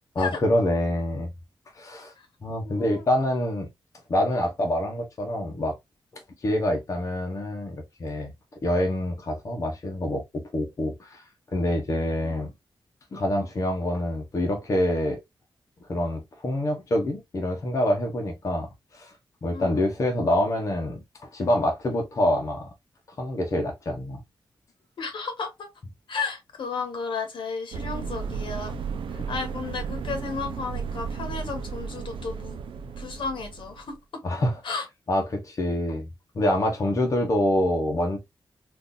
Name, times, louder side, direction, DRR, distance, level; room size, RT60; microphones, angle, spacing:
voice 1, 0.2-1.3 1.7-2.1 2.4-3.7 4.1-5.8 6.1-8.3 8.6-11.2 11.5-12.5 13.1-15.2 15.9-19.1 19.4-21.0 21.3-22.7 23.2-24.2 34.2-34.6 35.1-36.1 36.3-38.2, left 1 dB, 40° left, 0.8 m, -26 dB
voice 2, 2.6-3.1 4.3-4.5 12.2-12.5 19.5-19.8 25.0-25.7 26.1-28.8 29.1-32.6 33.0-34.2 34.6-34.8, left 4 dB, 75° left, 1.1 m, -33 dB
sound 1, 27.7-34.0, right 6 dB, 90° right, 0.5 m, -34 dB
3.7 x 2.6 x 2.5 m
wide cardioid pair, 180°, 8 cm